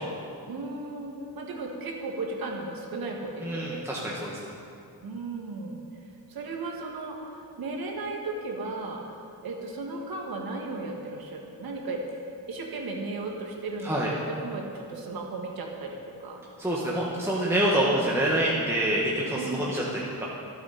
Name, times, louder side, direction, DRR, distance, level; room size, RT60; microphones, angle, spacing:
voice 1, 0.5-3.9 5.0-5.8 6.3-7.2 7.6-9.0 9.4-12.0 12.5-14.0 14.3-16.4 19.3-19.6, right 3 dB, 70° right, 0 dB, 2.3 m, -35 dB
voice 2, 3.4-4.3 13.8-14.1 16.6-20.2, right 1 dB, 5° right, -5 dB, 1.7 m, -26 dB
25.5 x 8.7 x 4.4 m, 2.5 s
wide cardioid pair, 130°, 38 cm